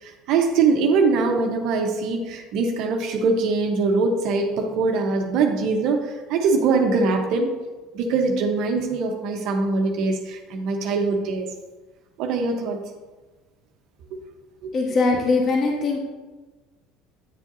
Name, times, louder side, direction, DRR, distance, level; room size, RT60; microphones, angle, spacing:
voice 1, 0.0-7.5 7.9-11.5 12.2-12.8 14.6-14.7, right 4 dB, 60° right, 3 dB, 1.1 m, -22 dB
voice 2, 14.7-16.0, left 3 dB, 45° left, 0 dB, 1.4 m, -21 dB
9.3 x 7.2 x 2.8 m, 1.2 s
hypercardioid pair, 75°, 0 cm